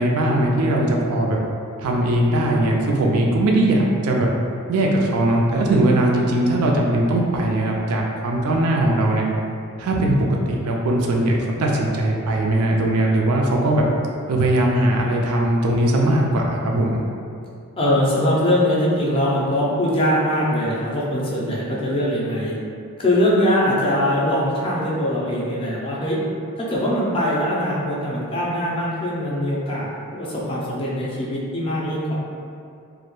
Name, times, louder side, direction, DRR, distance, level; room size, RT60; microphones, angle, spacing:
voice 1, 0.0-1.4 1.8-4.3 4.7-9.3 9.8-10.2 10.5-13.8 14.3-17.0, right 1 dB, 85° right, -1 dB, 0.4 m, -20 dB
voice 2, 17.8-22.6 23.0-26.2 26.6-32.1, left 1 dB, 25° left, -6 dB, 0.4 m, -22 dB
2.2 x 2.1 x 3.0 m, 2.4 s
head